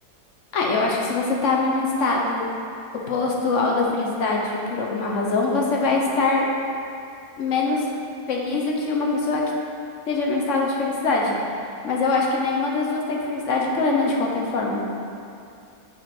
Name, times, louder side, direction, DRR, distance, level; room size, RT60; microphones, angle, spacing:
voice 1, 0.5-2.5 3.1-6.5 7.4-7.8 8.3-9.4 10.1-11.3 11.8-14.9, left 3 dB, 55° left, -1 dB, 1.0 m, -23 dB
6.7 x 4.8 x 4.3 m, 2.5 s
omnidirectional pair, 1.8 m